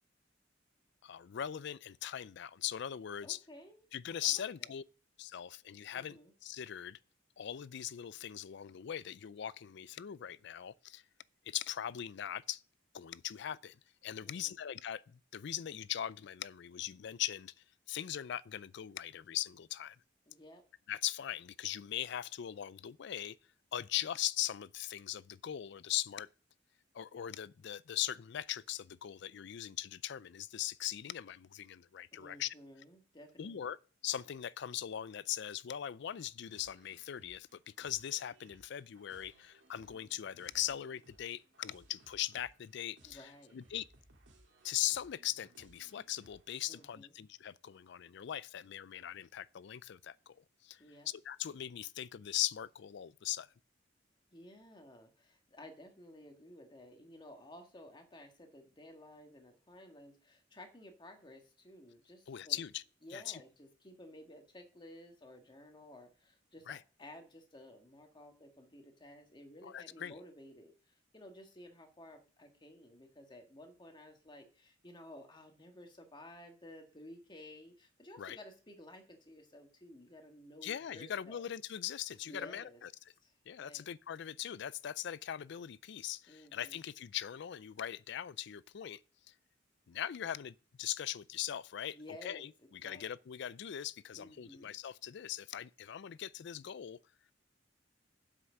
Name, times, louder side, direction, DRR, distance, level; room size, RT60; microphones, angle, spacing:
voice 1, 1.0-3.4 3.9-4.8 5.2-7.0 7.4-11.0 11.5-12.6 12.9-17.5 17.9-20.0 20.9-23.4 23.7-26.3 26.9-32.5 33.4-33.8 34.0-43.9 44.6-50.4 50.6-53.5 62.3-62.8 63.1-63.4 66.7-66.8 69.6-70.2 78.2-78.4 80.6-82.9 83.5-89.0 89.9-97.0, left 11 dB, 65° left, 0.4 m, -40 dB
voice 2, 3.2-3.8 4.2-4.7 5.9-6.3 14.2-14.6 20.3-20.6 32.1-33.7 43.0-43.6 46.7-47.1 50.8-51.1 54.3-62.6 63.0-81.5 82.2-82.8 83.2-83.3 83.6-83.8 86.3-86.8 91.9-93.0 94.1-94.7, left 1 dB, 25° left, 1.7 m, -54 dB
sound 1, 36.5-46.8, right 1 dB, 75° right, 2.2 m, -65 dB
7.8 x 6.0 x 6.6 m
head